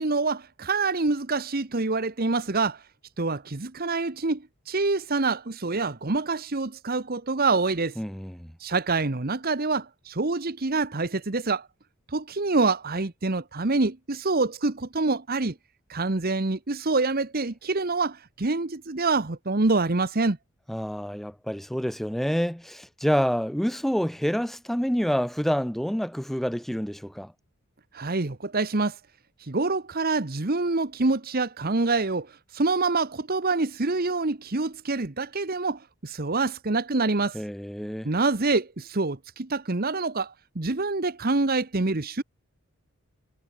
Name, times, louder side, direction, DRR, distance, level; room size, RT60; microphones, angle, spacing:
voice 1, 0.0-2.8 3.2-8.0 8.6-11.7 12.1-15.5 15.9-20.4 27.9-29.0 29.4-37.4 38.0-42.2, right 3 dB, 40° right, 1.1 m, -26 dB
voice 2, 8.0-8.5 20.7-27.3 37.3-38.1, equal, ahead, 0.5 m, -28 dB
head